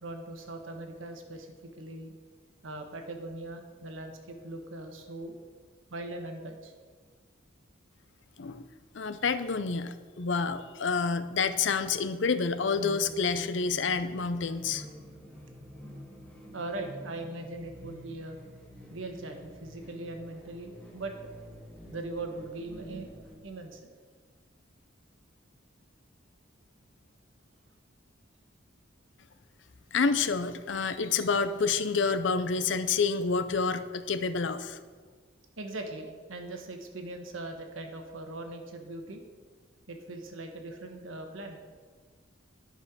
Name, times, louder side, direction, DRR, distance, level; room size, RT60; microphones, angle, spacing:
voice 1, 0.0-2.1 2.6-5.4 5.9-6.7 16.5-18.4 18.9-21.3 21.9-23.9 35.6-39.2 39.9-41.6, right 2 dB, 85° right, 5 dB, 1.3 m, -40 dB
voice 2, 8.9-14.9 29.9-34.8, left 5 dB, 65° left, 12 dB, 0.6 m, -28 dB
sound 1, 12.6-23.4, equal, 5° left, 1.5 m, -48 dB
10.5 x 5.5 x 6.1 m, 1.5 s
head